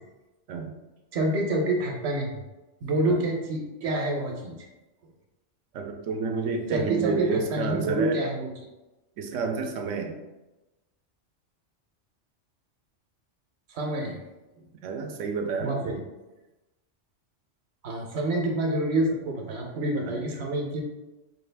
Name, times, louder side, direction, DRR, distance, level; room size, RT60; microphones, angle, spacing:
voice 1, 1.1-2.4 2.8-4.6 6.7-8.5 13.7-14.2 15.6-16.0 17.8-20.8, right 2 dB, 65° right, 1 dB, 1.0 m, -27 dB
voice 2, 5.7-8.3 9.2-10.2 14.8-15.8 20.0-20.2, right 4 dB, 85° right, 4 dB, 0.9 m, -30 dB
4.3 x 2.4 x 3.3 m, 1.1 s
omnidirectional pair, 1.3 m